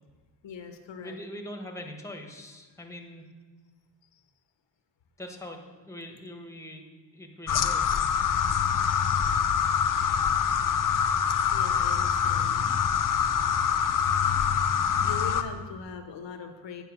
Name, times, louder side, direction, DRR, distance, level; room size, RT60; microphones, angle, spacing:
voice 1, 0.4-1.2 11.5-12.6 15.0-16.8, left 6 dB, 85° left, 6 dB, 1.0 m, -40 dB
voice 2, 1.0-3.3 5.2-6.9 7.1-8.1, left 1 dB, 5° left, 3 dB, 1.2 m, -42 dB
sound 1, 7.5-15.4, left 7 dB, 50° left, 0.6 m, -25 dB
9.1 x 5.7 x 6.1 m, 1.4 s
cardioid pair, 95°, 43 cm